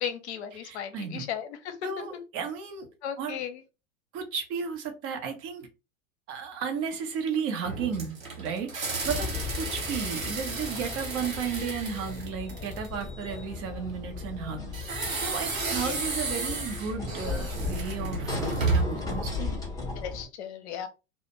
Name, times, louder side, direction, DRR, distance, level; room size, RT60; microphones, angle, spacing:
voice 1, 0.0-1.7 3.0-3.6 15.8-15.9 20.0-20.9, left 9 dB, 55° left, 0.7 m, -35 dB
voice 2, 0.5-1.3 1.8-2.9 3.2-3.4 4.1-5.7 6.3-19.5, right 6 dB, 35° right, 0.8 m, -34 dB
sound 1, 7.6-13.0 14.7-19.1, right 3 dB, 90° right, 0.8 m, -32 dB
sound 2, 9.0-20.2, left 4 dB, 10° left, 0.8 m, -36 dB
2.4 x 2.1 x 2.9 m
figure-of-eight pair, 90°, 40 cm